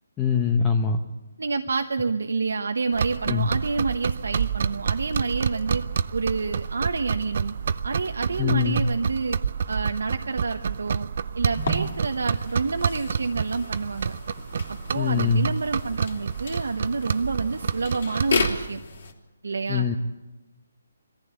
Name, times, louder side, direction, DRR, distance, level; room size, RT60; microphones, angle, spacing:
voice 1, 0.2-1.0 3.3-3.5 8.4-8.8 14.9-15.5 19.7-20.0, left 6 dB, 15° left, 3 dB, 0.8 m, -23 dB
voice 2, 1.4-7.6 7.8-9.4 9.7-11.1 11.3-14.1 14.7-18.8 19.4-19.9, right 4 dB, 80° right, 6 dB, 1.0 m, -28 dB
sound 1, 2.9-18.7, right 6 dB, 50° right, 0.6 m, -29 dB
sound 2, 11.5-19.1, left 3 dB, 60° left, 3.2 m, -33 dB
22.5 x 14.5 x 8.2 m, 1.1 s
hypercardioid pair, 160°, 0 cm